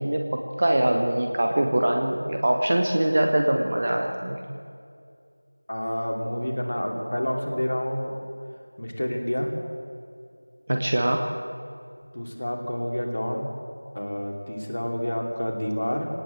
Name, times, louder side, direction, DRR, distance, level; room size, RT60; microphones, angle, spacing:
voice 1, 0.0-4.6 10.7-11.3, right 1 dB, 20° right, 3 dB, 1.0 m, -23 dB
voice 2, 5.7-8.1 8.8-9.5 12.1-13.5 13.9-16.1, equal, 35° left, 2 dB, 2.8 m, -28 dB
24.5 x 18.5 x 7.8 m, 2.3 s
figure-of-eight pair, 175°, 0 cm